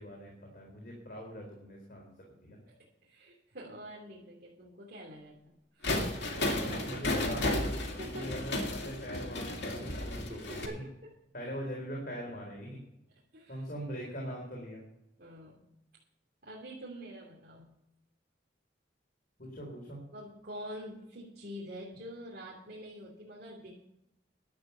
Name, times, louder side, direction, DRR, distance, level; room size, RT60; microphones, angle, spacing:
voice 1, 0.0-2.1 2.4-2.6 6.8-7.5 8.1-10.8 11.3-12.8 13.5-14.8 19.4-20.0, equal, 55° left, -1 dB, 3.9 m, -41 dB
voice 2, 3.0-5.4 5.7-7.2 7.9-8.3 10.3-11.1 13.3-13.6 14.2-14.3 15.2-15.6 16.4-17.7 20.1-23.7, equal, 55° right, -5 dB, 3.0 m, -46 dB
sound 1, 5.8-10.7, left 1 dB, 70° left, 2.5 m, -33 dB
11.5 x 8.9 x 6.9 m, 0.84 s
head